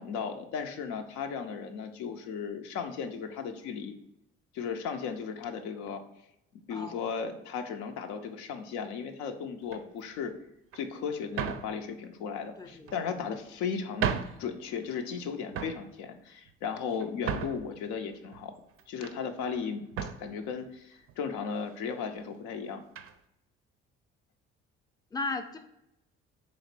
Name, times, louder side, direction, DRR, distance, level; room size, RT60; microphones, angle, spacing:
voice 1, 0.0-3.9 4.5-6.0 6.7-10.3 10.7-14.1 14.4-18.5 18.9-22.8, left 6 dB, 75° left, 6 dB, 0.5 m, -36 dB
voice 2, 6.7-7.0 12.6-13.2 25.1-25.6, left 3 dB, 15° left, 6 dB, 0.4 m, -36 dB
sound 1, 9.6-10.0 10.7-10.8 11.3-11.7 12.7-13.3 13.7-13.8 14.0-14.4 14.8-15.2 15.5-15.8 16.5-17.7 18.3-19.2 19.5-19.6 19.9-20.3 21.1-21.2 21.5-21.7 23.0-23.2, right 7 dB, 50° right, 0.4 m, -35 dB
3.0 x 2.5 x 4.3 m, 0.84 s
hypercardioid pair, 60°, 29 cm